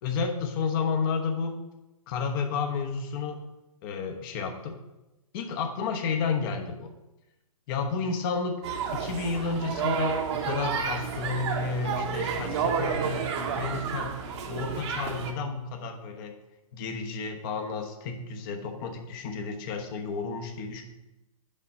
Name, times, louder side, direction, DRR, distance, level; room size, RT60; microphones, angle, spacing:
voice 1, 0.0-1.6 2.1-3.4 3.8-4.8 5.3-6.7 7.7-8.6 8.9-14.2 14.5-16.3 16.7-20.8, left 5 dB, 35° left, 4 dB, 1.0 m, -31 dB
sound 1, 8.6-15.3, right 6 dB, 50° right, 1.1 m, -30 dB
5.5 x 5.2 x 6.2 m, 0.99 s
hypercardioid pair, 130°, 19 cm